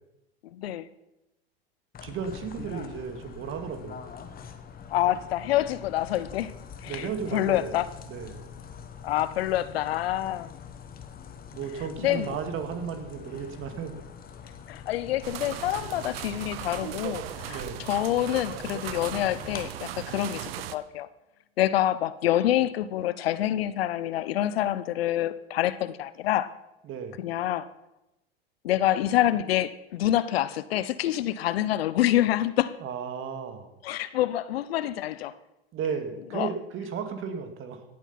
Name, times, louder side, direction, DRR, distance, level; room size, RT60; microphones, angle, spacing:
voice 1, 0.5-0.9 4.9-6.5 6.8-7.9 9.0-10.5 12.0-12.4 14.7-17.6 17.9-21.1 21.6-26.5 27.2-27.7 28.6-32.8 33.8-35.3 36.3-36.5, left 13 dB, 75° left, 0.8 m, -27 dB
sound 1, 1.9-19.7, left 7 dB, 30° left, 1.6 m, -44 dB
voice 2, 2.0-4.0 6.9-7.8 8.1-8.4 11.5-13.9 17.5-17.9 26.8-27.2 32.8-33.7 35.7-37.8, right 6 dB, 45° right, 2.2 m, -34 dB
sound 2, 15.2-20.8, right 12 dB, 70° right, 0.9 m, -37 dB
17.5 x 8.1 x 5.8 m
hypercardioid pair, 95°, 30 cm